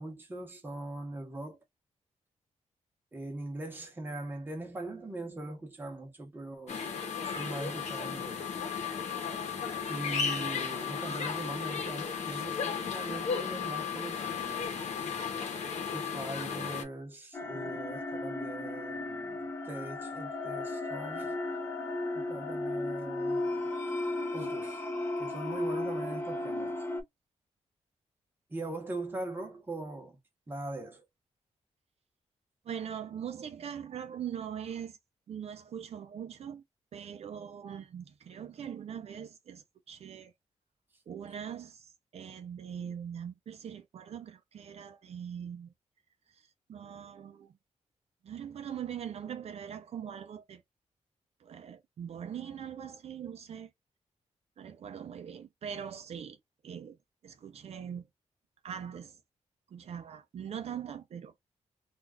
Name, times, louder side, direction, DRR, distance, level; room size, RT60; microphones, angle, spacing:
voice 1, 0.0-1.6 3.1-6.9 7.2-8.6 9.9-14.9 15.9-21.4 22.1-23.7 24.3-24.9 25.2-26.8 28.5-30.2 30.5-31.1, right 2 dB, 15° right, 0.9 m, -41 dB
sound 1, 6.7-16.8, left 6 dB, 70° left, 0.9 m, -35 dB
sound 2, 17.3-27.0, left 2 dB, 20° left, 0.6 m, -35 dB
voice 2, 32.6-35.0 35.3-36.6 36.9-40.3 41.1-41.9 42.1-45.7 46.7-47.5 48.2-50.6 51.4-53.7 54.6-56.4 56.6-57.0 57.2-58.1 58.6-59.2 59.7-61.3, right 8 dB, 60° right, 0.5 m, -41 dB
2.4 x 2.3 x 3.4 m
wide cardioid pair, 170°, 12 cm